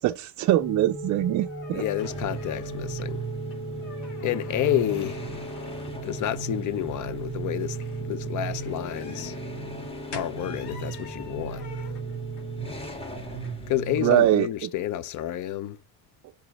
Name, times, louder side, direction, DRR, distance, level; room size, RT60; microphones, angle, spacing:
voice 1, 0.0-1.8 14.0-14.7, right 13 dB, 50° right, 0.4 m, -23 dB
sound 1, 0.5-12.9, right 1 dB, ahead, 1.7 m, -39 dB
sound 2, 0.6-14.4, left 5 dB, 80° left, 3.8 m, -47 dB
voice 2, 1.7-3.2 4.2-5.2 6.0-9.4 10.1-11.9 13.7-15.8, left 12 dB, 50° left, 0.6 m, -30 dB
sound 3, 2.0-14.2, right 4 dB, 15° left, 1.5 m, -36 dB
6.9 x 4.9 x 4.0 m
cardioid pair, 150°, 39 cm